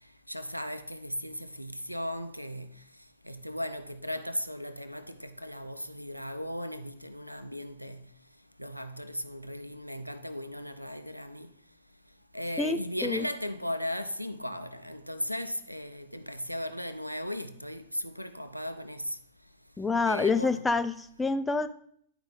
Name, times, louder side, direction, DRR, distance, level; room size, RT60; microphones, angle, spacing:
voice 1, 0.3-2.7 3.2-8.0 8.6-11.5 12.3-19.2 20.0-20.6, equal, 90° right, 0.4 m, -37 dB
voice 2, 12.6-13.3 19.8-21.7, left 4 dB, 10° left, 0.5 m, -27 dB
10.0 x 4.7 x 3.9 m
figure-of-eight pair, 90°, 0 cm